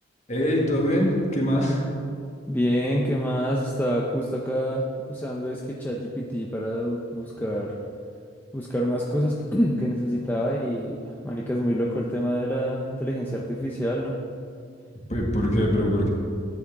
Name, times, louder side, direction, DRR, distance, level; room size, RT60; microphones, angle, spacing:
voice 1, 0.3-1.8 15.1-16.1, equal, 35° left, -2 dB, 1.8 m, -23 dB
voice 2, 2.5-7.7 8.5-14.2, equal, 10° left, -2 dB, 0.6 m, -27 dB
12.5 x 9.5 x 3.7 m, 2.3 s
head